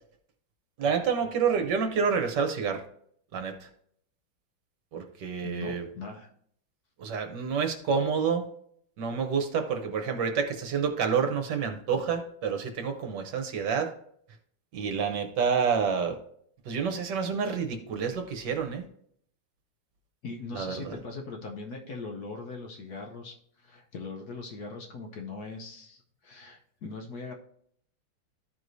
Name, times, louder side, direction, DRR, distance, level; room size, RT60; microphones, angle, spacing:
voice 1, 0.8-2.8 3.3-3.7 4.9-5.8 7.0-8.4 9.0-13.9 14.7-16.2 16.6-18.8 20.5-20.9, right 6 dB, 65° right, 6 dB, 1.4 m, -28 dB
voice 2, 5.4-6.3 20.2-27.3, left 4 dB, 60° left, 2 dB, 1.1 m, -40 dB
13.5 x 4.7 x 2.6 m, 0.66 s
omnidirectional pair, 2.2 m